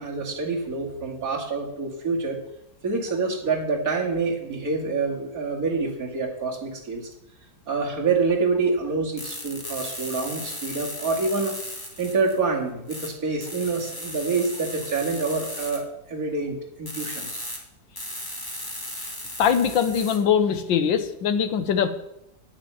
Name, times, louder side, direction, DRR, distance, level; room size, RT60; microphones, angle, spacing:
voice 1, 0.0-2.4 2.8-7.1 7.7-11.6 12.0-17.4, right 4 dB, 50° right, -1 dB, 2.8 m, -27 dB
sound 1, 9.2-12.4 12.9-13.1 13.4-15.8 16.9-17.6 18.0-20.2, left 1 dB, 10° left, 2.2 m, -36 dB
voice 2, 19.4-21.9, left 7 dB, 90° left, 9 dB, 1.8 m, -22 dB
9.8 x 8.7 x 7.1 m, 0.82 s
omnidirectional pair, 2.0 m